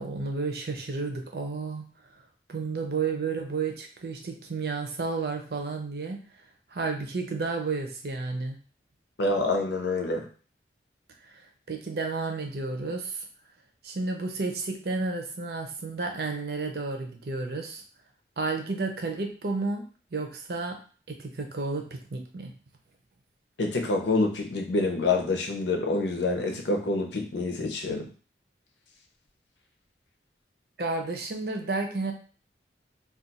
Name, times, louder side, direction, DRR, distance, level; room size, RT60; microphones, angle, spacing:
voice 1, 0.0-1.9 2.5-6.2 6.7-8.6 11.3-13.3 13.8-17.8 18.4-19.8 20.1-20.8 21.1-22.5 30.8-32.1, right 3 dB, 60° right, 3 dB, 0.6 m, -31 dB
voice 2, 9.2-10.3 23.6-28.1, left 2 dB, 85° left, 3 dB, 0.7 m, -27 dB
2.5 x 2.3 x 4.0 m, 0.39 s
head